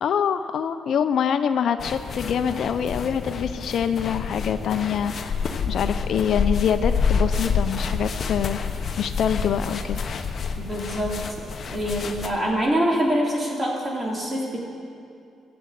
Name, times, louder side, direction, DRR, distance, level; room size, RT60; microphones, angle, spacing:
voice 1, 0.0-8.6 9.0-10.0, left 8 dB, 65° left, 10 dB, 0.5 m, -25 dB
sound 1, 1.8-12.3, left 5 dB, 50° left, 1.0 m, -28 dB
voice 2, 10.6-14.6, equal, 20° right, -2 dB, 3.2 m, -25 dB
14.0 x 7.8 x 8.2 m, 2.5 s
cardioid pair, 90°, 0 cm